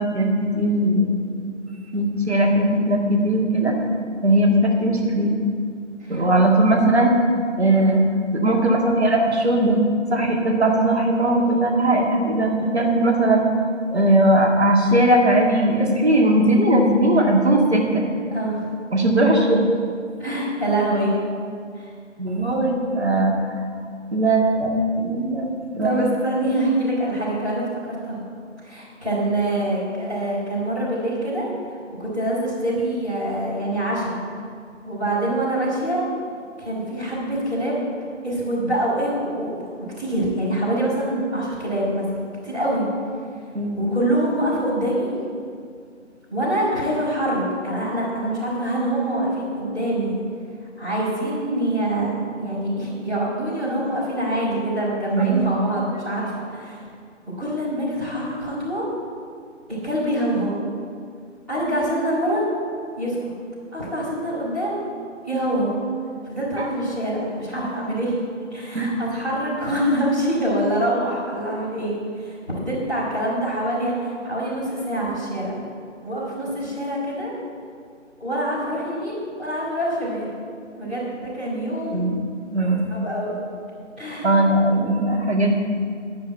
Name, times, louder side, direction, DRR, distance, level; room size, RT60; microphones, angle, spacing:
voice 1, 0.0-1.4 1.9-3.8 4.2-5.4 6.1-7.1 7.6-8.0 8.3-9.8 10.1-13.4 13.9-18.0 18.9-19.5 22.2-23.4 24.1-25.9 43.5-43.9 55.2-55.4 66.6-66.7 68.7-68.9 81.9-82.2 82.5-82.9 84.2-85.6, right 1 dB, 60° right, 0 dB, 2.0 m, -19 dB
voice 2, 20.2-21.1 21.7-21.9 25.8-28.2 28.6-31.4 32.0-34.1 34.8-36.1 36.6-37.9 38.2-39.7 40.0-42.1 42.4-42.8 43.8-45.1 46.3-50.2 50.8-56.8 57.4-58.9 59.8-60.6 61.5-62.4 62.9-63.3 63.7-64.8 65.2-65.7 66.3-68.2 68.5-75.6 76.0-77.3 78.2-80.3 80.7-82.1 82.9-83.3 84.0-84.3, right 1 dB, ahead, -21 dB, 1.9 m, -25 dB
10.5 x 6.8 x 8.6 m, 2.2 s
figure-of-eight pair, 165°, 38 cm